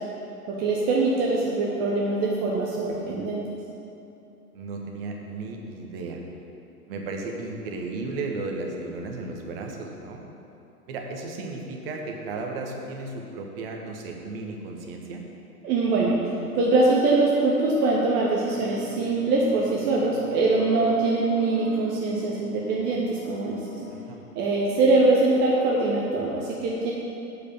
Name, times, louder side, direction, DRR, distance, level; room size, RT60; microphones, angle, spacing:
voice 1, 0.5-3.4 15.6-16.2 16.5-23.6 24.3-26.9, right 3 dB, 20° right, -3 dB, 0.8 m, -23 dB
voice 2, 4.5-6.2 6.9-10.2 10.9-15.2 23.9-24.2, right 3 dB, 40° right, 1 dB, 1.3 m, -34 dB
sound 1, 18.4-23.9, left 1 dB, ahead, 0.3 m, -38 dB
7.8 x 6.5 x 7.1 m, 2.8 s
figure-of-eight pair, 105°, 47 cm